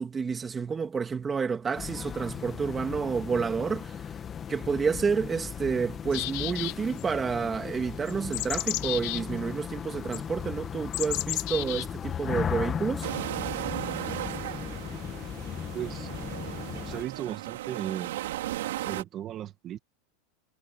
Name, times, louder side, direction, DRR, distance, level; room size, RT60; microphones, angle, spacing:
voice 1, 0.0-4.0 4.5-13.1, right 5 dB, 15° right, 2.8 m, -29 dB
sound 1, 1.7-17.0, left 8 dB, 25° left, 2.0 m, -37 dB
sound 2, 6.1-7.0 8.1-9.2 10.1-10.2 10.9-11.9 13.0-13.1, left 24 dB, 55° left, 2.8 m, -32 dB
sound 3, 13.0-19.0, right 15 dB, 80° right, 5.4 m, -36 dB
voice 2, 15.7-16.1 16.9-18.1 18.8-19.8, right 11 dB, 30° right, 2.2 m, -36 dB
supercardioid pair, 145°, 0 cm